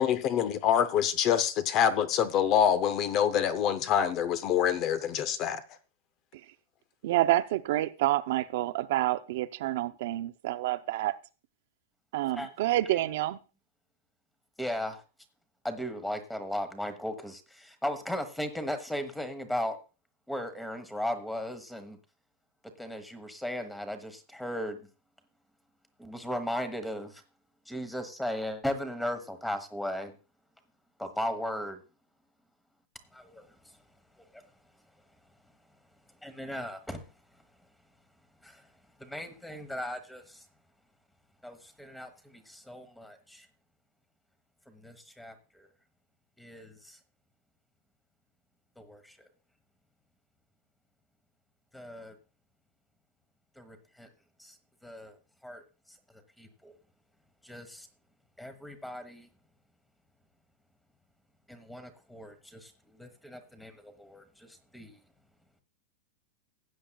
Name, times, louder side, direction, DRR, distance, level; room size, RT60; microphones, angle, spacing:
voice 1, 0.0-5.6, left 9 dB, 30° left, 0.6 m, -26 dB
voice 2, 7.0-11.2 12.1-13.4, right 15 dB, 60° right, 0.5 m, -28 dB
voice 3, 14.6-15.0 15.6-19.8 20.3-22.0 22.8-24.9 26.0-27.2 27.7-30.1 31.0-31.8 33.1-33.8 34.2-34.4 36.2-37.1 38.4-38.7 39.0-40.4 41.4-43.5 44.7-45.7 46.4-47.0 48.8-49.3 51.7-52.1 53.6-54.1 54.4-54.6 54.8-55.2 55.4-55.6 56.1-56.8 57.4-57.9 58.4-59.3 61.5-65.0, left 1 dB, 5° left, 1.1 m, -37 dB
15.5 x 8.8 x 2.3 m
supercardioid pair, 160°, 0 cm